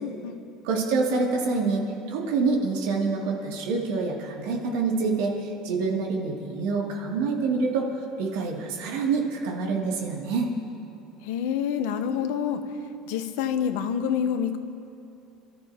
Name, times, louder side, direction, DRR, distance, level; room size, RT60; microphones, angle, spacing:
voice 1, 0.0-0.4 11.2-12.6 13.1-14.6, left 8 dB, 85° left, 8 dB, 1.0 m, -27 dB
voice 2, 0.6-7.9 8.2-10.5, right 4 dB, 80° right, -1 dB, 2.6 m, -26 dB
28.5 x 13.5 x 3.0 m, 2.7 s
cardioid pair, 175°, 0 cm